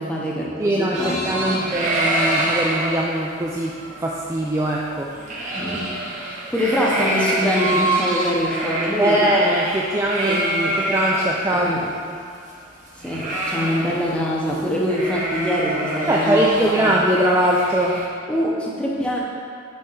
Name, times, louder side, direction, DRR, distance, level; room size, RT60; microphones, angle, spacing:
voice 1, 0.0-1.6 5.5-5.8 6.2-9.2 10.2-10.8 11.5-11.8 13.0-16.9 18.3-19.2, equal, 5° left, -4 dB, 0.8 m, -24 dB
voice 2, 0.6-5.1 9.0-10.4 10.8-11.7 16.1-18.0, right 1 dB, 15° right, -4 dB, 0.3 m, -21 dB
sound 1, 0.9-11.4 11.7-11.8 12.1-14.2 14.5-14.6 14.9-18.0, right 1 dB, 35° right, 0.9 m, -26 dB
6.4 x 3.5 x 5.6 m, 2.3 s
head